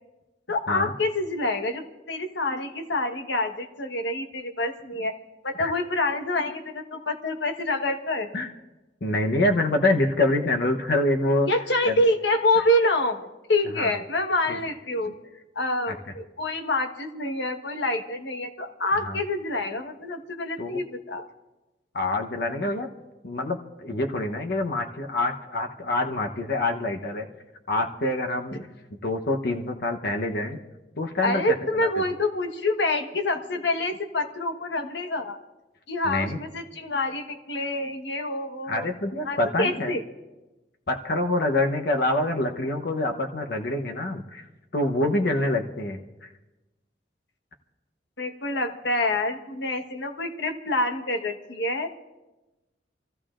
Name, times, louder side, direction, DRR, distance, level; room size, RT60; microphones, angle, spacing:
voice 1, 0.5-5.1 5.4-8.3 11.5-15.1 15.5-21.2 28.5-28.6 31.2-35.4 35.9-38.8 39.2-40.0 48.2-51.9, left 1 dB, 80° left, 5 dB, 1.3 m, -27 dB
voice 2, 9.0-11.5 11.9-12.0 13.7-13.9 14.5-14.6 15.9-16.0 19.0-19.2 20.6-20.8 21.9-22.9 23.2-27.3 27.7-28.6 29.0-30.6 31.0-31.9 36.0-36.4 38.7-40.0 40.9-44.5 44.7-46.3, left 2 dB, 60° left, 3 dB, 0.9 m, -26 dB
27.0 x 14.5 x 2.5 m, 1.1 s
head